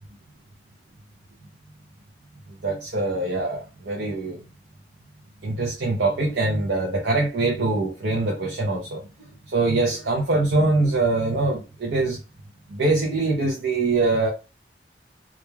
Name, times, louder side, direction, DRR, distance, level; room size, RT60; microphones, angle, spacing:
voice 1, 2.6-4.4 5.4-9.0 9.5-12.2 12.7-14.3, right 2 dB, 70° right, 0.6 m, -23 dB
2.4 x 2.2 x 3.0 m
head